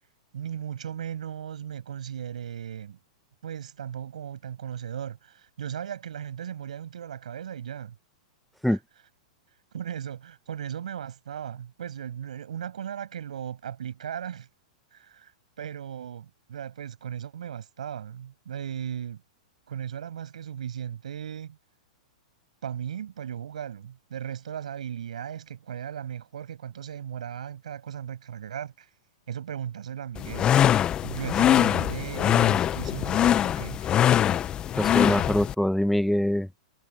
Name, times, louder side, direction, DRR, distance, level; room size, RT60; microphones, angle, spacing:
voice 1, 0.3-3.0 3.4-8.0 8.7-8.8 9.7-14.5 14.9-15.3 15.6-19.2 19.7-21.6 22.6-28.9 29.3-30.6 31.0-33.9, right 9 dB, 85° right, 7.1 m, -37 dB
sound 1, 30.2-35.5, left 10 dB, 25° left, 0.7 m, -23 dB
voice 2, 34.8-36.6, equal, ahead, 1.5 m, -24 dB
hypercardioid pair, 140°, 4 cm